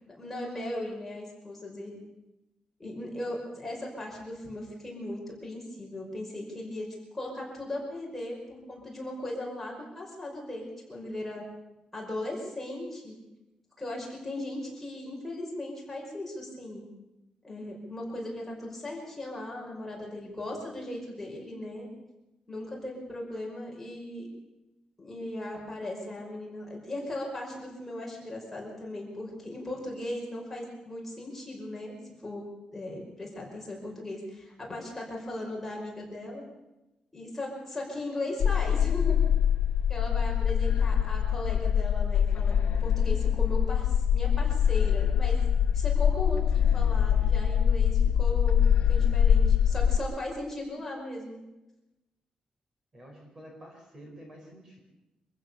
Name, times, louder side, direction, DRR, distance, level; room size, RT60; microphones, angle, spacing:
voice 1, 0.1-2.0 2.8-6.9 7.1-11.4 11.9-13.2 13.8-16.8 17.4-21.9 22.5-24.3 25.0-32.4 32.7-36.4 37.1-39.2 39.9-45.4 45.7-51.4, left 1 dB, 10° left, -2 dB, 5.6 m, -37 dB
sound 1, 38.4-50.0, left 8 dB, 80° left, 0.7 m, -24 dB
voice 2, 52.9-54.8, equal, 25° right, 1 dB, 5.1 m, -49 dB
26.0 x 15.5 x 7.0 m, 0.98 s
wide cardioid pair, 175°, 2 cm